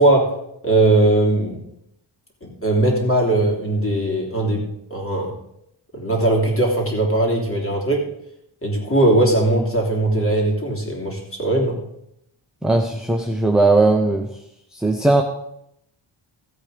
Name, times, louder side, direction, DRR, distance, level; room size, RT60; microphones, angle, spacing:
voice 1, 0.0-1.6 2.4-5.3 5.9-8.0 8.6-11.8, right 2 dB, 25° left, -1 dB, 3.2 m, -19 dB
voice 2, 12.6-14.3 14.7-15.2, right 2 dB, ahead, 2 dB, 0.8 m, -18 dB
15.0 x 8.2 x 5.1 m, 0.77 s
wide cardioid pair, 155°, 49 cm